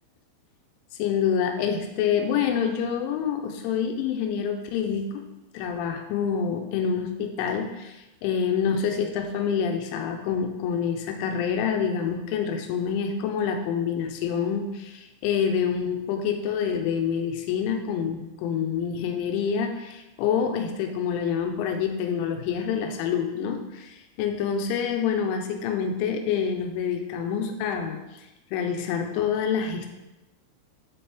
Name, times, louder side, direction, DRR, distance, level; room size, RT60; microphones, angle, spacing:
voice 1, 1.0-5.2 5.5-28.0 28.5-29.9, left 7 dB, 90° left, 5 dB, 3.1 m, -27 dB
8.1 x 4.3 x 3.4 m, 0.99 s
omnidirectional pair, 5.4 m